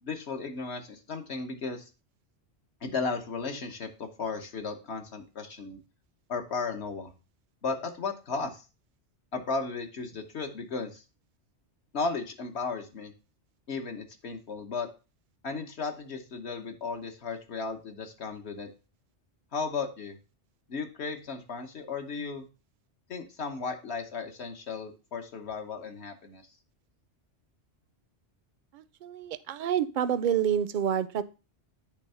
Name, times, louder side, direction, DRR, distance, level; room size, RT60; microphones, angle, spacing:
voice 1, 0.0-1.9 2.8-5.8 6.3-7.1 7.6-8.6 9.3-11.0 11.9-13.1 13.7-14.9 15.4-18.7 19.5-20.2 20.7-22.5 23.1-26.4, left 4 dB, 65° left, 4 dB, 1.3 m, -35 dB
voice 2, 28.7-31.2, right 9 dB, 55° right, 14 dB, 0.6 m, -28 dB
8.3 x 3.5 x 5.5 m, 0.31 s
omnidirectional pair, 1.2 m